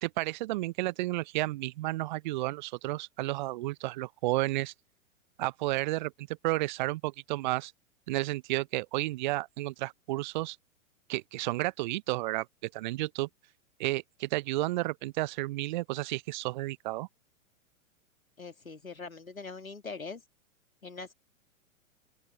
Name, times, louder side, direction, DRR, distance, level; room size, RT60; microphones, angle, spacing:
voice 1, 0.0-4.7 5.4-7.7 8.1-10.6 11.1-13.3 13.8-17.1, right 19 dB, 35° right, 0.6 m, -32 dB
voice 2, 18.4-20.2 20.8-21.1, left 4 dB, 90° left, 2.7 m, -42 dB
open air
figure-of-eight pair, 110°, 41 cm